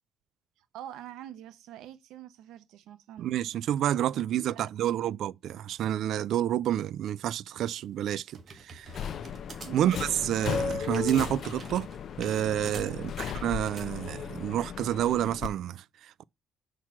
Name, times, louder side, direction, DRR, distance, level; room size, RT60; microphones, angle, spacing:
voice 1, 0.6-3.3 4.1-5.2 9.6-10.0 12.9-13.1, right 12 dB, 80° right, 0.9 m, -46 dB
voice 2, 3.2-8.9 9.7-11.9 12.2-16.2, right 11 dB, 60° right, 0.3 m, -29 dB
sound 1, 7.8-13.9, right 4 dB, 30° right, 1.5 m, -48 dB
Subway metro underground, 8.8-15.5, left 7 dB, 45° left, 0.6 m, -36 dB
5.8 x 4.6 x 6.0 m
cardioid pair, 155°, 0 cm